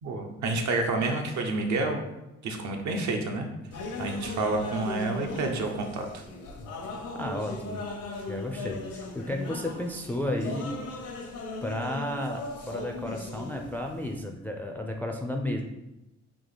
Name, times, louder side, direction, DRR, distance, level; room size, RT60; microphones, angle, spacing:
voice 1, 0.0-2.0 2.4-3.5 4.0-6.2, right 3 dB, 70° right, 3 dB, 0.8 m, -29 dB
sound 1, 3.7-14.2, left 2 dB, 90° left, 0.9 m, -38 dB
voice 2, 7.1-7.8 8.3-11.2 11.6-15.6, left 1 dB, 5° left, 3 dB, 0.3 m, -33 dB
3.7 x 2.8 x 3.9 m, 0.95 s
cardioid pair, 90°, 30 cm